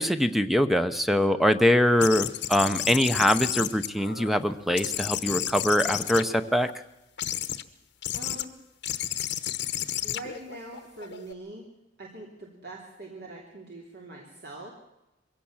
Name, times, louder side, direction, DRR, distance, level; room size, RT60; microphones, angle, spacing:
voice 1, 0.0-6.7, equal, ahead, 10 dB, 0.8 m, -23 dB
sound 1, 2.0-4.4 4.8-6.7 7.2-7.6 8.0-8.4 8.8-11.3, left 11 dB, 65° left, 1.1 m, -32 dB
voice 2, 8.1-8.5 10.0-11.6 12.0-14.7, right 2 dB, 60° right, -2 dB, 3.3 m, -43 dB
23.0 x 17.0 x 7.3 m, 0.92 s
head